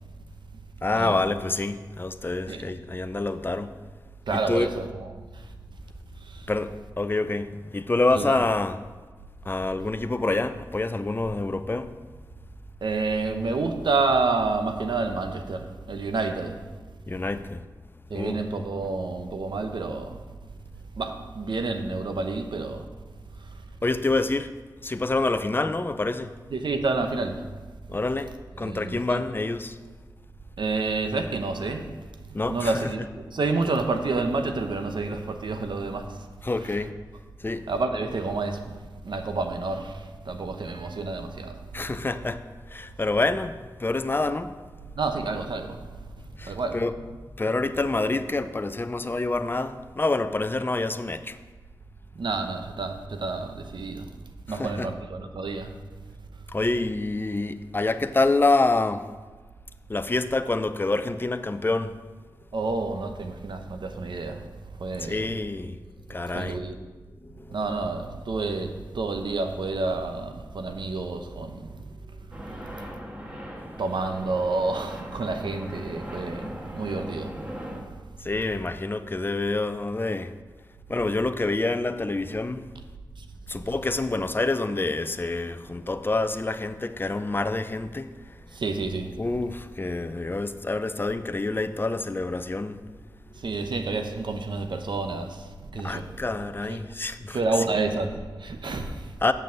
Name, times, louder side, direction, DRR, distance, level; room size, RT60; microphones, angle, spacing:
voice 1, 0.8-3.7 4.3-4.7 6.5-8.8 9.5-11.9 17.1-17.6 18.1-18.4 23.8-24.5 24.8-26.3 27.9-29.8 32.3-32.8 36.4-36.9 37.4-37.6 41.7-42.4 42.7-44.5 46.4-46.9 47.4-51.4 54.5-54.9 56.5-59.0 59.9-62.0 64.9-65.8 66.1-66.6 67.2-67.6 78.2-80.3 80.9-82.7 83.5-88.1 89.2-92.8 95.8-97.4 99.2-99.3, left 2 dB, 25° left, 0.5 m, -27 dB
voice 2, 4.3-5.4 6.2-6.5 8.1-8.4 12.8-16.6 18.1-20.2 21.0-22.9 23.4-23.6 26.5-27.4 28.6-29.2 30.6-31.9 32.4-36.3 37.7-38.8 39.0-41.6 44.9-45.8 46.4-46.8 52.1-54.1 54.5-55.8 62.5-64.4 64.8-65.3 66.3-66.8 67.5-71.7 72.5-72.8 73.8-77.5 83.2-83.3 88.5-89.2 93.4-96.1 96.7-96.8 97.3-99.1, right 3 dB, 80° right, 0.8 m, -29 dB
sound 1, 72.3-77.8, equal, 20° right, 1.7 m, -39 dB
7.0 x 5.8 x 7.5 m
cardioid pair, 50°, 8 cm